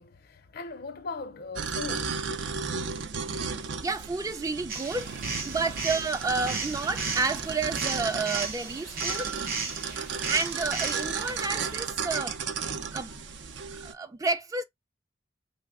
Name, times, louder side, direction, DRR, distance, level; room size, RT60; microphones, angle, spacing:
voice 1, 0.0-3.7 12.6-13.2, left 4 dB, 55° left, 0.5 m, -42 dB
sound 1, 1.6-13.9, right 5 dB, 75° right, 0.5 m, -34 dB
voice 2, 3.8-5.1 5.5-9.3 10.3-12.4 12.9-13.1 13.8-14.6, right 4 dB, 20° right, 0.3 m, -30 dB
sound 2, 4.7-11.8, right 4 dB, 55° right, 0.9 m, -35 dB
3.3 x 2.1 x 3.5 m
head